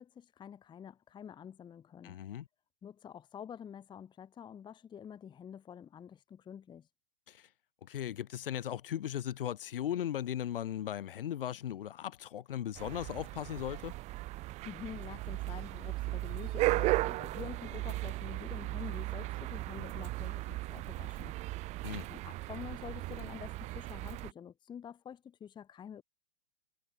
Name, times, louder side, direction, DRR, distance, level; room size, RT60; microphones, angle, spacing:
voice 1, 0.0-2.2 2.8-6.9 14.6-21.4 22.1-26.0, left 8 dB, 15° left, 1.3 m, -48 dB
voice 2, 2.0-2.5 7.3-7.5 7.8-13.9 21.8-22.1, left 11 dB, 65° left, 3.3 m, -37 dB
sound 1, 12.7-24.3, right 19 dB, 25° right, 0.6 m, -36 dB
hypercardioid pair, 125°, 29 cm